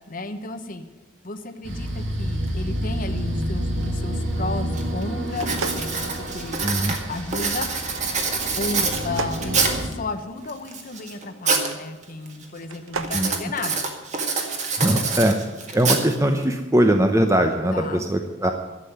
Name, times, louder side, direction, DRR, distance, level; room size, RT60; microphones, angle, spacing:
voice 1, 0.1-0.9 1.2-6.6 7.1-7.7 8.6-13.9 17.7-18.0, left 3 dB, 40° left, 8 dB, 1.0 m, -33 dB
sound 1, 1.6-9.9, equal, 65° right, 2.3 m, -29 dB
Writing, 4.2-4.3 4.8-5.0 5.4-9.9 10.5-11.7 12.0-12.4 13.0-16.4, right 4 dB, 35° right, 1.8 m, -26 dB
sound 2, 5.3-6.7 8.9-10.5 12.6-13.2, right 3 dB, 85° right, 0.9 m, -34 dB
voice 2, 6.6-7.0 13.1-13.3 14.8-15.4 15.7-18.5, right 1 dB, 15° right, 5 dB, 0.7 m, -20 dB
12.0 x 7.7 x 9.5 m, 1.2 s
head